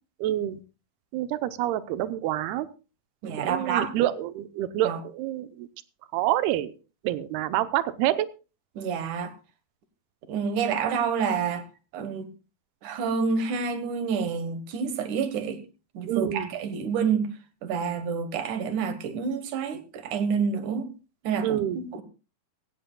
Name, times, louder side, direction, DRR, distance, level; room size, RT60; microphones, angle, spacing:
voice 1, 0.2-0.6 1.1-2.7 3.4-5.7 6.1-6.7 7.0-8.3 16.1-16.5 21.4-21.8, right 13 dB, 90° right, 13 dB, 2.8 m, -27 dB
voice 2, 3.2-3.9 4.8-5.0 8.8-9.3 10.3-11.6 11.9-12.3 12.8-15.6 15.9-17.3 17.6-20.9 21.2-21.6 21.9-22.0, right 6 dB, 65° right, 10 dB, 2.4 m, -28 dB
16.5 x 16.0 x 2.2 m, 0.32 s
omnidirectional pair, 4.4 m